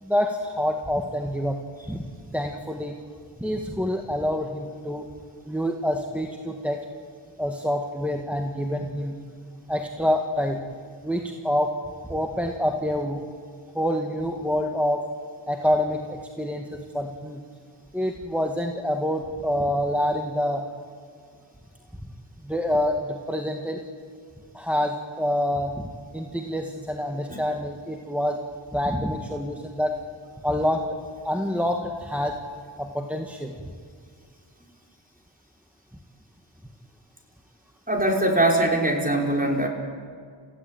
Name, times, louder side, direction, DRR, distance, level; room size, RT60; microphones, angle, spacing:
voice 1, 0.0-1.6 1.9-2.0 2.3-3.0 3.4-5.1 5.5-6.8 7.4-9.2 9.7-10.6 11.0-11.7 12.1-13.2 13.7-15.0 15.5-17.4 17.9-20.7 22.4-23.8 24.5-28.4 28.7-30.0 30.4-31.0 31.2-32.4 32.8-33.5, equal, 5° right, 3 dB, 1.9 m, -27 dB
voice 2, 37.9-39.7, right 1 dB, 20° right, 0 dB, 5.5 m, -22 dB
30.0 x 16.0 x 9.3 m, 2.1 s
wide cardioid pair, 45°, 46 cm